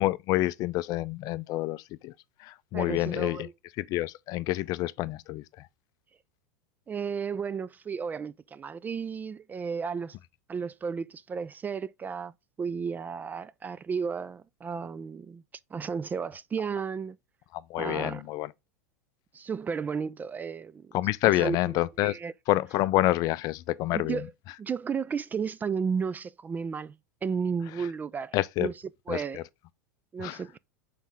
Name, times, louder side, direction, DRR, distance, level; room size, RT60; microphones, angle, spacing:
voice 1, 0.0-2.1 2.4-3.5 3.8-5.7 17.5-18.5 20.9-22.2 22.5-24.5 27.7-27.9 28.3-28.7 29.1-29.4 30.2-30.4, left 16 dB, 45° left, 0.4 m, -28 dB
voice 2, 2.7-3.5 6.9-10.2 10.5-12.3 12.6-15.4 15.7-17.2 17.8-18.2 19.3-20.9 21.4-21.6 22.0-22.3 23.9-24.3 24.6-27.0 27.2-28.3 28.6-28.7 29.1-29.4 30.1-30.6, right 6 dB, 20° right, 0.3 m, -33 dB
7.3 x 4.1 x 3.5 m
hypercardioid pair, 85°, 9 cm